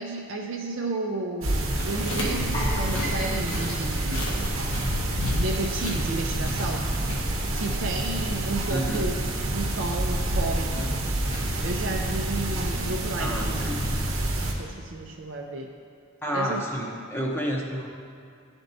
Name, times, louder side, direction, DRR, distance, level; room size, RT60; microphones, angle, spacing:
voice 1, 0.0-4.6 5.4-6.9 7.5-9.1 9.5-11.0 11.6-13.6 14.6-15.7 16.3-16.6, right 3 dB, 60° right, 0 dB, 0.4 m, -32 dB
sound 1, 1.4-14.5, right 1 dB, 75° right, 0.8 m, -28 dB
sound 2, 1.8-13.9, left 1 dB, 80° left, 1.2 m, -35 dB
sound 3, 2.5-5.5 5.8-6.0 6.5-6.6, left 1 dB, 30° left, 1.0 m, -38 dB
voice 2, 8.7-9.1 13.2-13.8 16.2-17.9, equal, 10° left, -1 dB, 0.7 m, -30 dB
11.5 x 4.4 x 2.6 m, 2.3 s
head